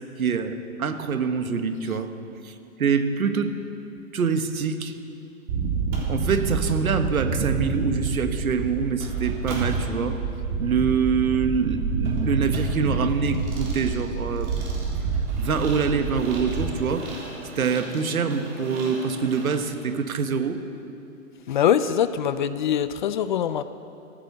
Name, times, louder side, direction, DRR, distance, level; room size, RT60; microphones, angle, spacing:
voice 1, 0.2-2.1 2.4-3.5 4.1-4.9 6.1-10.2 10.6-14.5 15.4-17.1 17.5-20.7, right 5 dB, 85° right, 8 dB, 1.4 m, -25 dB
sound 1, 5.5-16.7, right 4 dB, 45° right, 1.9 m, -28 dB
sound 2, 5.9-6.1 6.5-6.7 9.0-9.8 12.0-19.6, right 2 dB, 30° right, 3.6 m, -40 dB
voice 2, 21.5-23.6, left 9 dB, 35° left, 14 dB, 0.4 m, -23 dB
14.5 x 12.0 x 6.8 m, 2.7 s
hypercardioid pair, 140°, 41 cm